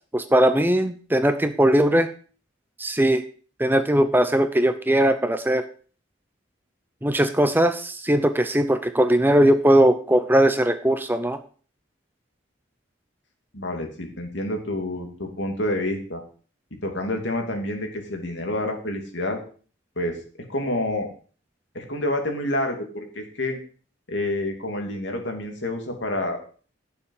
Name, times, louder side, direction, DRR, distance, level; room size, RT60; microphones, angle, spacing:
voice 1, 0.1-2.1 2.8-3.2 3.6-5.6 7.0-11.4, right 1 dB, 10° right, 10 dB, 0.6 m, -19 dB
voice 2, 13.5-16.2 16.8-19.4 20.0-20.2 20.5-21.1 21.7-23.6 24.1-26.4, left 1 dB, 65° left, 3 dB, 2.8 m, -28 dB
16.5 x 7.1 x 4.9 m, 0.41 s
head